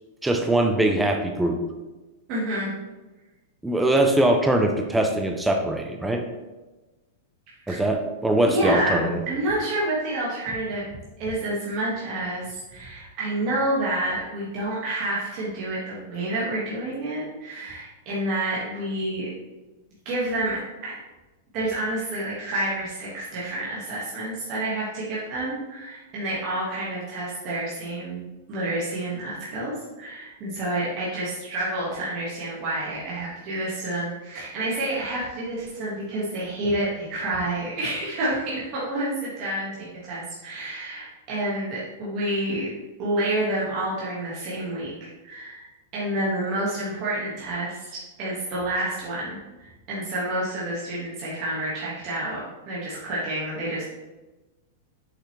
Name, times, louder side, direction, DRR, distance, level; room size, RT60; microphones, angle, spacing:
voice 1, 0.2-1.6 3.6-6.2 7.7-9.2, right 1 dB, 5° right, 3 dB, 0.4 m, -22 dB
voice 2, 2.3-2.7 7.7-7.8 8.4-19.3 20.0-21.0 21.5-28.2 28.5-42.7 43.0-45.7 45.9-53.8, right 1 dB, 30° right, -7 dB, 1.5 m, -29 dB
6.8 x 5.8 x 3.1 m, 1.1 s
supercardioid pair, 175°, 0 cm